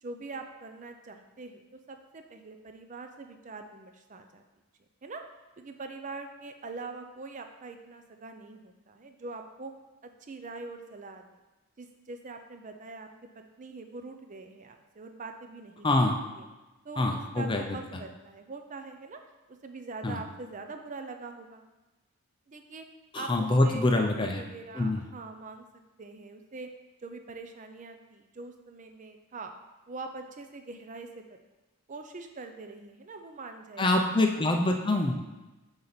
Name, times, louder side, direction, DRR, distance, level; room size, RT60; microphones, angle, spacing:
voice 1, 0.0-1.6 1.9-4.4 5.0-5.2 5.6-9.7 10.0-11.4 11.8-13.1 13.6-15.9 16.3-16.4 16.8-19.2 19.5-21.6 22.5-22.8 23.1-25.7 26.0-26.7 27.0-29.5 29.9-31.3 31.9-33.9, right 3 dB, 35° right, 6 dB, 0.5 m, -43 dB
voice 2, 15.8-16.2 17.0-17.8 20.0-20.2 23.1-24.4 24.7-25.0 33.8-35.2, left 2 dB, 20° left, 3 dB, 0.5 m, -25 dB
6.8 x 4.4 x 4.0 m, 1.1 s
head